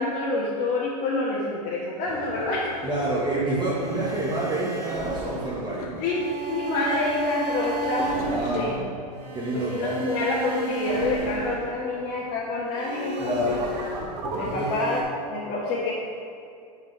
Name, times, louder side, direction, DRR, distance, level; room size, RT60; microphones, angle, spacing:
voice 1, 0.0-2.7 6.0-8.8 9.5-13.6 14.3-15.0 15.3-15.9, left 2 dB, 45° left, -8 dB, 1.7 m, -27 dB
Boat Water vehicle, 2.1-8.7, left 7 dB, 70° left, 0.7 m, -37 dB
voice 2, 2.8-6.0 8.3-8.9 9.3-10.0 13.2-13.7 14.4-14.7, right 2 dB, 20° right, -6 dB, 1.5 m, -28 dB
sound 1, 3.6-12.1 12.7-15.0, right 3 dB, 75° right, 2.0 m, -33 dB
11.5 x 4.7 x 3.4 m, 2.4 s
hypercardioid pair, 115°, 20 cm